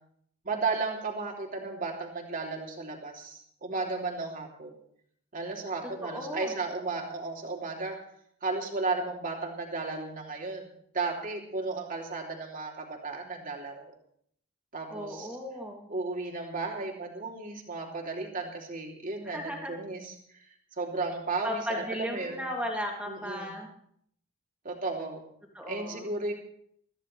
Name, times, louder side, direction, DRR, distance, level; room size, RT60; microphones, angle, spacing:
voice 1, 0.4-4.7 5.3-8.0 8.4-10.7 10.9-13.9 14.7-15.3 15.9-20.1 20.8-22.5 23.1-23.5 24.6-25.2 25.7-26.3, right 3 dB, 45° right, 0 dB, 3.0 m, -34 dB
voice 2, 5.8-6.6 14.9-15.9 19.2-19.8 21.4-23.7 25.5-26.1, equal, 5° right, -1 dB, 2.7 m, -36 dB
22.0 x 14.5 x 3.3 m, 0.68 s
head